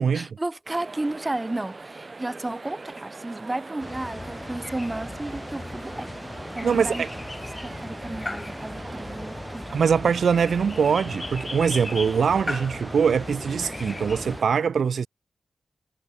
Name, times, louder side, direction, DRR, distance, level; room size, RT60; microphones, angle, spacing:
voice 1, 0.1-6.1 6.5-7.0 7.6-9.7, right 2 dB, 20° right, 0.7 m, -33 dB
sound 1, 0.7-14.4, right 3 dB, 35° right, 1.5 m, -41 dB
sound 2, 3.8-14.4, left 2 dB, 20° left, 1.1 m, -37 dB
voice 2, 6.6-7.1 9.7-15.1, right 6 dB, 70° right, 0.5 m, -23 dB
cardioid pair, 75°, 0 cm